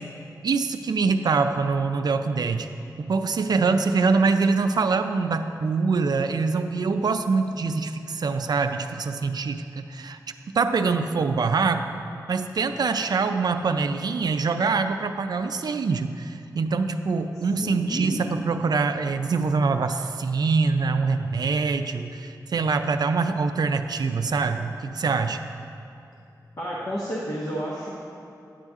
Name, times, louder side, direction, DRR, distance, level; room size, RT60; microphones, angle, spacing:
voice 1, 0.4-2.7 3.0-10.2 10.5-11.9 12.3-25.5, right 4 dB, 70° right, 7 dB, 0.4 m, -24 dB
voice 2, 17.3-18.2 26.6-27.9, equal, 50° left, -6 dB, 1.1 m, -31 dB
10.0 x 7.8 x 3.6 m, 2.6 s
wide cardioid pair, 105°, 7 cm